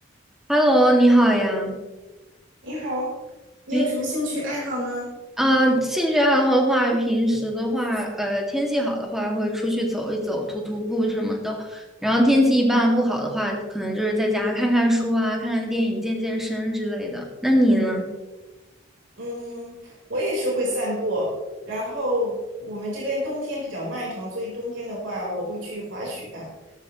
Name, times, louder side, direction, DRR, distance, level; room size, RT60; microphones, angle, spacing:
voice 1, 0.5-1.8 3.7-3.8 5.4-18.1, equal, ahead, 0 dB, 2.3 m, -21 dB
voice 2, 2.6-3.1 3.7-5.1 19.2-21.3 21.6-26.5, equal, 75° right, -5 dB, 4.6 m, -28 dB
17.0 x 13.0 x 3.2 m, 1.1 s
head